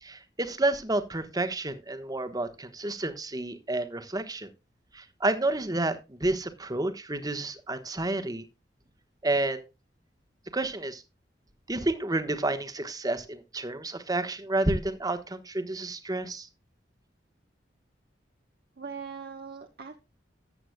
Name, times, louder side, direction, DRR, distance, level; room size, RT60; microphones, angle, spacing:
voice 1, 0.0-4.5 4.9-8.4 9.2-9.7 10.5-11.0 11.7-16.5, right 2 dB, 20° right, 9 dB, 1.2 m, -30 dB
voice 2, 18.8-20.0, right 5 dB, 60° right, 3 dB, 1.1 m, -40 dB
14.0 x 8.9 x 2.2 m, 0.26 s
head